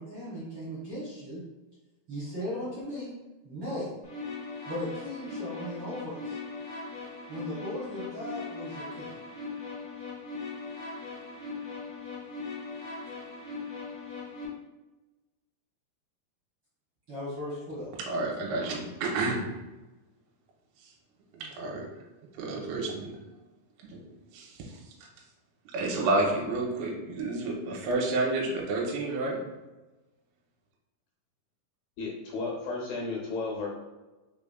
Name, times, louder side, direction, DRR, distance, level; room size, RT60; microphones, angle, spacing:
voice 1, 0.0-1.4 2.1-3.1 3.4-3.9 4.7-6.4 7.3-9.1 17.1-17.9, equal, 60° right, -10 dB, 1.5 m, -37 dB
sound 1, 4.0-14.4, left 3 dB, 60° left, 1.2 m, -39 dB
voice 2, 18.0-19.5 21.4-21.9 22.4-23.1 23.8-24.0 24.3-24.7 25.7-29.4, right 2 dB, 80° right, -1 dB, 2.6 m, -30 dB
voice 3, 32.0-33.7, left 3 dB, 75° left, -2 dB, 2.3 m, -33 dB
5.8 x 3.4 x 2.2 m, 1.1 s
omnidirectional pair, 4.7 m